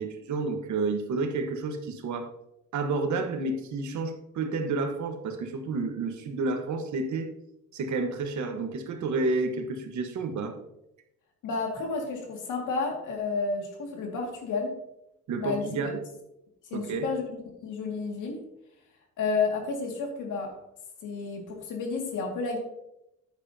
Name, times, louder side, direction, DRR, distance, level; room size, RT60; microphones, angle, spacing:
voice 1, 0.0-2.3 2.7-7.3 7.7-10.6 15.3-16.0 16.7-17.1, right 3 dB, 70° right, 6 dB, 1.4 m, -30 dB
voice 2, 11.4-14.7 15.4-15.9 16.7-17.2 17.6-18.4 19.2-20.5 21.0-22.6, left 4 dB, 85° left, 2 dB, 2.2 m, -31 dB
9.8 x 8.6 x 2.8 m, 0.85 s
cardioid pair, 90°, 30 cm